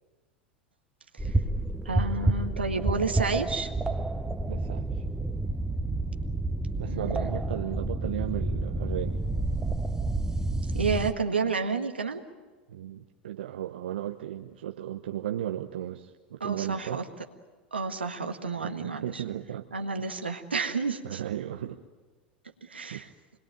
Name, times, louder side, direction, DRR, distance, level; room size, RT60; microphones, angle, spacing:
sound 1, 1.2-11.1, right 2 dB, 10° right, 1.2 m, -29 dB
voice 1, 1.8-3.7 6.9-7.3 10.7-12.2 16.4-17.0 17.7-19.2 19.7-21.2 22.6-23.1, right 4 dB, 90° right, 5 dB, 1.7 m, -30 dB
voice 2, 4.5-5.0 6.8-9.2 12.7-17.0 18.6-19.7 20.0-20.2 21.0-21.8 22.9-23.0, right 11 dB, 75° right, 4 dB, 1.0 m, -35 dB
26.5 x 21.0 x 9.1 m, 1.4 s
hypercardioid pair, 85°, 6 cm